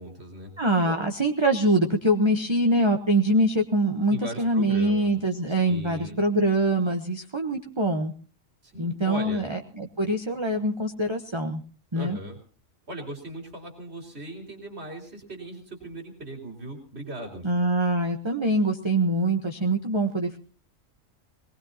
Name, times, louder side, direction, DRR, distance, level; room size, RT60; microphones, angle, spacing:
voice 1, 0.0-0.5 0.8-1.0 4.1-5.1 5.5-6.2 8.6-9.5 11.9-12.4 12.9-17.4, right 1 dB, 50° right, 3 dB, 3.8 m, -38 dB
voice 2, 0.6-8.1 8.8-11.6 11.9-12.2 17.4-20.4, right 1 dB, 25° right, 4 dB, 1.0 m, -24 dB
23.5 x 19.5 x 2.8 m, 0.40 s
omnidirectional pair, 1.4 m